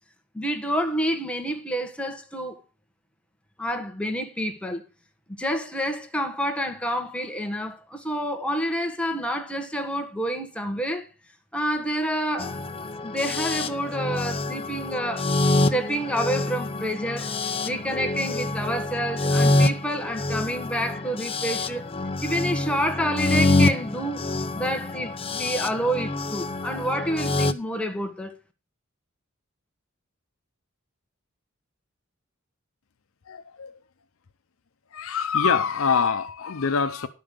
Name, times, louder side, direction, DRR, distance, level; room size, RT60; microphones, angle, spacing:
voice 1, 0.3-2.6 3.6-4.8 5.3-11.1 11.5-12.5 13.0-15.3 15.5-17.3 17.6-21.9 22.2-24.3 24.5-28.3, equal, 5° left, 1.3 m, -28 dB
sound 1, 12.4-27.5, left 2 dB, 25° left, 0.6 m, -26 dB
voice 2, 33.3-33.7 34.9-37.1, left 6 dB, 75° left, 0.7 m, -24 dB
11.0 x 5.5 x 6.8 m
head